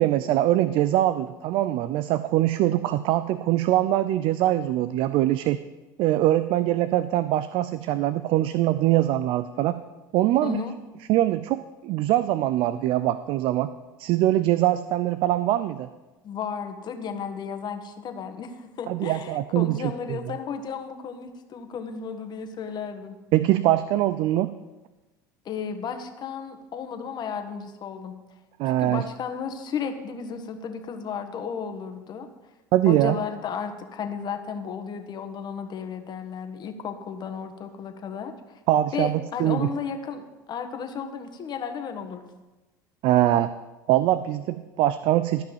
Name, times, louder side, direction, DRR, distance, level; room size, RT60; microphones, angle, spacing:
voice 1, 0.0-5.6 6.0-9.8 10.1-10.6 11.1-13.7 14.0-15.9 18.9-19.8 20.1-20.2 23.3-24.5 28.6-29.0 32.7-33.2 38.7-39.7 43.0-43.5 43.9-45.4, right 14 dB, 55° right, 14 dB, 0.5 m, -23 dB
voice 2, 10.4-10.7 16.2-23.2 25.4-28.1 28.6-32.3 32.8-38.3 38.9-42.3, left 6 dB, 45° left, 7 dB, 1.5 m, -34 dB
13.5 x 5.9 x 7.3 m, 1.1 s
hypercardioid pair, 80°, 10 cm